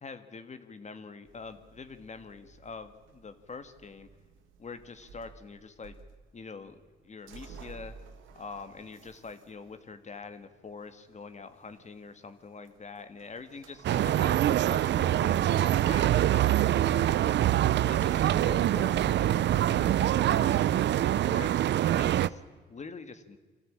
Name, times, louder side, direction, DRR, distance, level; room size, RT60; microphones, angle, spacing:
voice 1, 0.0-4.1 4.6-5.9 6.3-7.9 8.3-14.4 14.7-17.4 17.9-20.7 21.0-21.6 22.0-23.4, left 4 dB, 35° left, 9 dB, 1.7 m, -45 dB
sound 1, 1.2-20.0, right 6 dB, 85° right, 2.0 m, -52 dB
sound 2, 13.8-22.3, right 12 dB, 65° right, 0.6 m, -25 dB
24.0 x 14.5 x 8.7 m, 1.4 s
cardioid pair, 90°, 20 cm